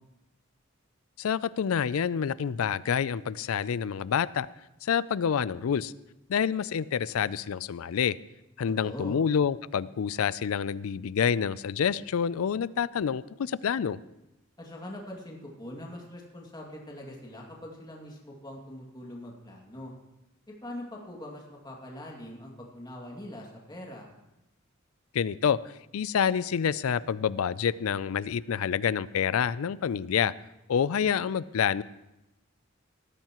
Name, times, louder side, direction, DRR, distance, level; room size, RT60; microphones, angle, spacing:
voice 1, 1.2-4.5 4.8-5.9 6.3-8.2 8.6-14.0 25.1-25.6 25.9-30.3 30.7-31.8, left 7 dB, 85° left, 19 dB, 0.4 m, -27 dB
voice 2, 8.8-9.2 14.6-19.9 20.5-24.1, left 1 dB, 20° left, -2 dB, 2.3 m, -42 dB
18.0 x 13.5 x 3.0 m, 0.93 s
head